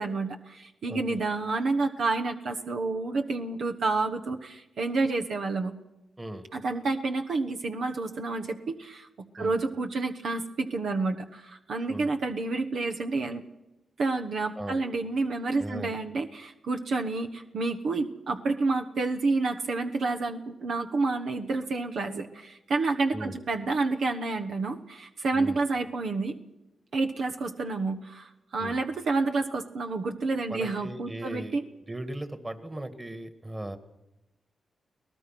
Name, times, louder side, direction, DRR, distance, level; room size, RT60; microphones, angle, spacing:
voice 1, 0.0-5.7 6.5-9.1 9.3-13.4 14.0-26.3 26.9-31.6, right 3 dB, 75° right, 4 dB, 1.2 m, -29 dB
voice 2, 0.9-1.2 6.2-6.5 9.4-9.5 11.9-12.1 14.6-14.8 15.6-15.9 23.1-23.4 25.3-25.6 28.6-28.8 30.5-31.6 31.9-33.8, right 1 dB, 25° right, 11 dB, 2.2 m, -37 dB
24.0 x 18.0 x 6.1 m, 0.96 s
supercardioid pair, 50°, 0 cm